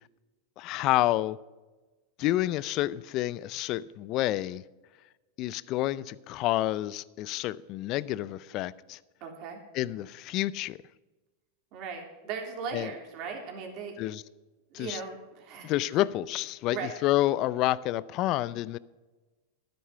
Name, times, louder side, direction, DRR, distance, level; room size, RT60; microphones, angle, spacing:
voice 1, 0.6-1.4 2.2-4.6 5.4-9.0 9.7-10.8 12.7-12.9 14.0-14.2 14.7-15.0 15.6-18.8, left 15 dB, 45° left, 0.5 m, -29 dB
voice 2, 9.2-9.6 11.7-14.0 14.7-16.0 16.6-16.9, right 5 dB, 50° right, 3.4 m, -38 dB
12.0 x 9.6 x 5.6 m
supercardioid pair, 125°, 0 cm